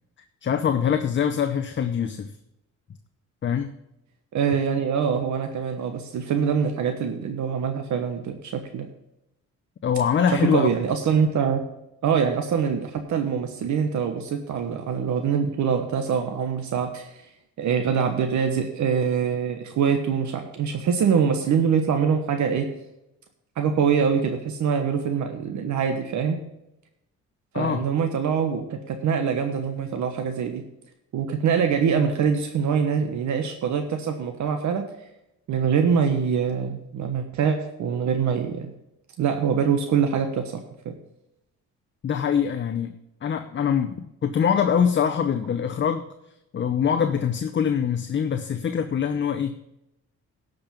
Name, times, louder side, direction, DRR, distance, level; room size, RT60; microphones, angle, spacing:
voice 1, 0.4-2.3 3.4-3.7 9.8-10.7 27.5-27.8 42.0-46.0 46.5-49.6, left 7 dB, 40° left, 8 dB, 0.8 m, -24 dB
voice 2, 4.3-8.9 10.3-11.6 12.0-17.1 17.6-22.7 23.6-26.4 27.5-30.6 31.1-34.8 35.5-38.7 39.2-40.6 40.8-40.9, right 6 dB, 70° right, 6 dB, 1.2 m, -24 dB
11.5 x 5.4 x 7.0 m, 0.86 s
cardioid pair, 90°, 30 cm